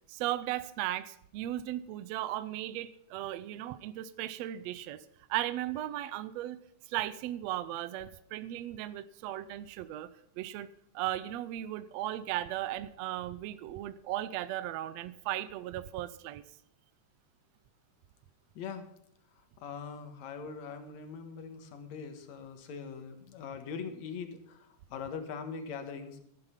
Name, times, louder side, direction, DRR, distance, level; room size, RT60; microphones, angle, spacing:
voice 1, 0.1-5.0 5.3-6.6 6.9-10.1 10.4-16.4, right 13 dB, 75° right, 13 dB, 1.7 m, -36 dB
voice 2, 18.6-18.9 19.6-26.2, left 6 dB, 65° left, 7 dB, 2.7 m, -42 dB
14.0 x 9.0 x 5.6 m, 0.71 s
omnidirectional pair, 3.4 m